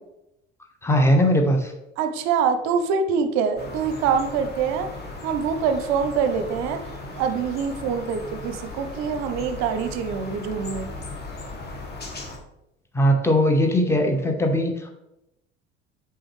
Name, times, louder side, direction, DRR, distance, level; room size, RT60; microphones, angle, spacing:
voice 1, 0.8-1.7 12.9-14.9, equal, 5° left, 3 dB, 1.0 m, -20 dB
voice 2, 2.0-4.9 5.2-6.8 7.2-10.9, right 6 dB, 50° right, 8 dB, 0.7 m, -24 dB
sound 1, 3.6-12.4, left 2 dB, 30° left, 1.4 m, -37 dB
6.3 x 4.8 x 3.2 m, 0.86 s
figure-of-eight pair, 60°, 35 cm